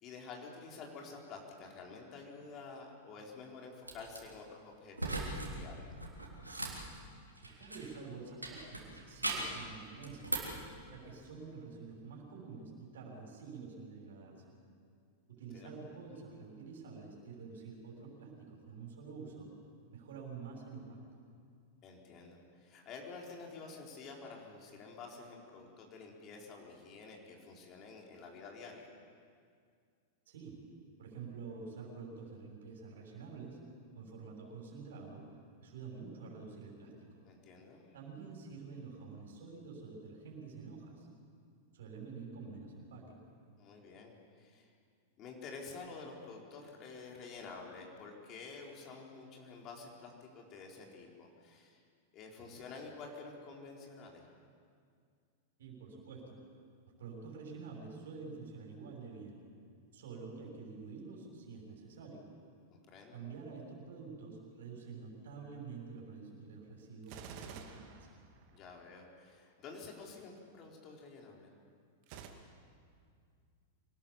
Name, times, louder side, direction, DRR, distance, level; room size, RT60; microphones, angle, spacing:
voice 1, 0.0-5.9 15.5-15.9 21.8-28.9 37.2-37.9 43.6-44.7 45.2-51.8 52.1-54.2 62.7-63.2 68.5-71.5, left 4 dB, 35° left, 0 dB, 4.2 m, -50 dB
sound 1, 3.8-4.2 4.9-5.5 5.8-8.0 8.4-9.6 10.0-10.6, right 2 dB, 90° right, 3.3 m, -39 dB
voice 2, 7.4-10.3 10.9-14.3 15.3-19.5 19.9-21.0 30.3-30.5 31.0-33.6 33.9-35.2 35.6-37.2 37.9-41.1 41.7-43.2 52.4-52.6 55.6-56.4 57.0-59.4 59.9-62.3 63.1-68.1, right 4 dB, 65° right, -1 dB, 6.7 m, -48 dB
Gunshot gunfire, 67.0-68.8 72.0-72.3, right 7 dB, 45° right, 2.3 m, -49 dB
25.5 x 19.0 x 7.4 m, 2.2 s
figure-of-eight pair, 95°, 0 cm